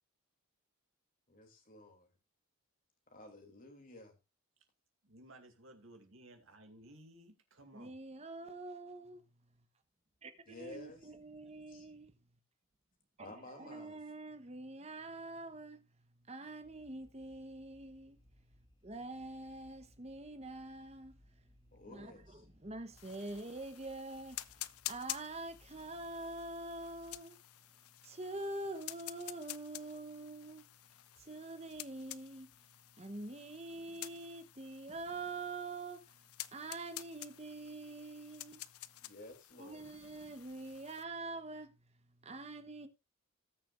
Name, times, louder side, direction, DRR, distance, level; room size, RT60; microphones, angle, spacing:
voice 1, 1.3-2.1 3.1-4.2 10.5-11.1 11.7-11.8 13.2-14.0 21.7-22.5 39.0-39.9, left 2 dB, 40° left, 2.7 m, -53 dB
voice 2, 5.0-8.0, right 1 dB, 65° right, 2.3 m, -57 dB
voice 3, 7.7-9.2 10.2-12.1 13.2-15.8 16.2-18.2 18.8-21.2 21.7-27.4 28.0-30.7 31.1-38.7 39.0-39.1 39.6-41.8 42.2-42.9, right 2 dB, 30° right, 0.9 m, -45 dB
sound 1, 16.6-27.2, left 1 dB, 20° left, 2.0 m, -67 dB
sound 2, 23.0-41.0, left 15 dB, 80° left, 0.5 m, -50 dB
18.5 x 6.7 x 2.5 m
head